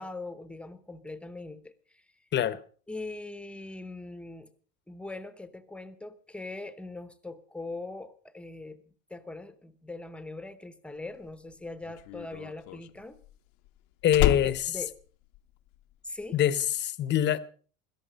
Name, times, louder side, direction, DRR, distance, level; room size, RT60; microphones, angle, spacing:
voice 1, 0.0-2.1 2.9-4.5 4.9-13.2 14.4-14.9 16.0-16.4, left 2 dB, 5° left, 0.9 m, -41 dB
Slam, 11.1-15.9 16.2-16.6, left 16 dB, 60° left, 0.9 m, -31 dB
voice 2, 14.0-14.6 16.3-17.4, left 10 dB, 30° left, 0.9 m, -24 dB
17.5 x 13.5 x 5.3 m
cardioid pair, 155°, 37 cm